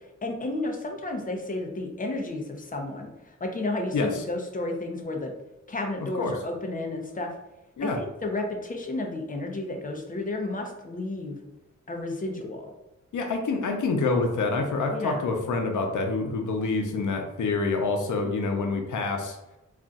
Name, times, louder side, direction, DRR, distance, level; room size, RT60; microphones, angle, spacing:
voice 1, 0.2-5.3 5.7-7.3 7.8-11.4 11.9-12.7 14.9-15.3, left 2 dB, 30° left, 3 dB, 0.5 m, -32 dB
voice 2, 3.9-4.2 6.2-6.3 7.8-8.0 13.1-19.4, left 3 dB, 85° left, 3 dB, 0.6 m, -27 dB
2.4 x 2.3 x 3.9 m, 0.94 s
wide cardioid pair, 110°, 30 cm